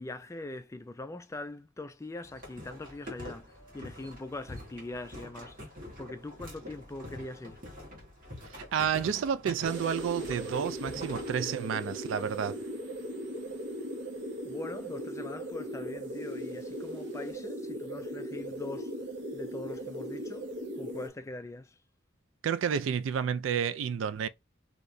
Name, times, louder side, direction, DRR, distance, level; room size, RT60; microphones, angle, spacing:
voice 1, 0.0-7.6 14.4-18.9 19.3-20.5 20.8-21.8, left 2 dB, 15° left, 0.3 m, -42 dB
sound 1, 2.2-11.4, left 1 dB, 45° right, 1.5 m, -45 dB
voice 2, 8.5-12.6 22.4-24.3, right 7 dB, 80° right, 0.3 m, -30 dB
sound 2, 9.6-21.1, equal, 65° right, 0.7 m, -38 dB
3.2 x 2.8 x 2.6 m
head